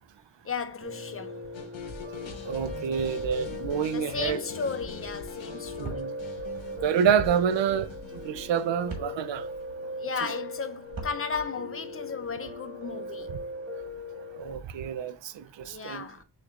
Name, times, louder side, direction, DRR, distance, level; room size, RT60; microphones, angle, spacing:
voice 1, 0.4-1.4 3.9-6.1 10.0-13.4 15.7-16.2, left 5 dB, 30° left, 0.5 m, -35 dB
Piano, 0.8-14.5, left 1 dB, 30° right, 1.4 m, -39 dB
sound 1, 1.5-9.6, left 4 dB, 85° left, 0.9 m, -44 dB
voice 2, 2.5-4.4 5.8-6.1 6.8-7.9 8.2-9.4 14.4-16.1, right 8 dB, 75° right, 0.5 m, -27 dB
sound 2, 5.8-6.0 7.2-7.3 8.9-9.1 10.8-11.2, right 3 dB, 50° right, 1.5 m, -36 dB
6.4 x 3.2 x 2.4 m
wide cardioid pair, 115°, 45 cm